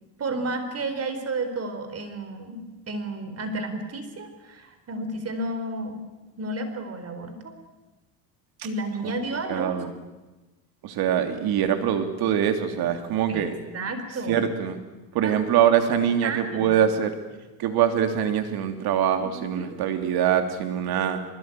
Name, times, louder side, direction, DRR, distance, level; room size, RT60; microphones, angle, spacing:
voice 1, 0.2-6.0 6.4-7.5 8.6-9.7 13.3-13.4 13.7-14.4 15.2-15.5 16.0-16.7 19.2-19.8, right 2 dB, 35° right, 8 dB, 4.4 m, -32 dB
voice 2, 9.5-9.9 10.8-13.6 14.3-14.8 15.1-17.2 17.6-21.3, right 9 dB, 65° right, 7 dB, 3.2 m, -23 dB
23.5 x 22.0 x 9.4 m, 1.1 s
cardioid pair, 110°, 39 cm